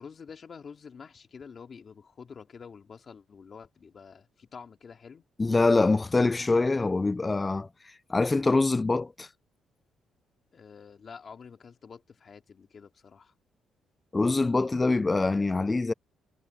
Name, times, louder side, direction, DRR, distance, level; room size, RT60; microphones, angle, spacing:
voice 1, 0.0-5.3 10.5-13.3, left 6 dB, 45° left, 2.7 m, -48 dB
voice 2, 5.4-7.7 8.1-9.3 14.1-15.9, left 3 dB, 20° left, 0.5 m, -24 dB
cardioid pair, 90°, 0 cm